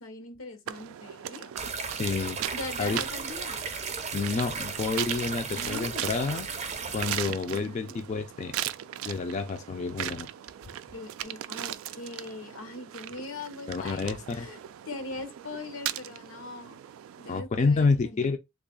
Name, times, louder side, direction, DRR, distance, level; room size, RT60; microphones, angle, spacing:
voice 1, 0.0-1.5 2.5-3.6 5.5-6.1 7.5-7.8 10.9-14.6 14.9-16.7 17.2-18.3, left 2 dB, 85° left, 0.8 m, -40 dB
sound 1, 0.7-17.4, right 12 dB, 85° right, 0.3 m, -39 dB
sound 2, 1.6-7.2, right 5 dB, 35° right, 0.6 m, -35 dB
voice 2, 2.0-2.4 2.8-3.0 4.1-6.5 6.9-8.5 9.0-10.3 13.7-14.5 17.3-18.4, left 4 dB, 35° left, 0.3 m, -29 dB
3.4 x 2.4 x 3.7 m
head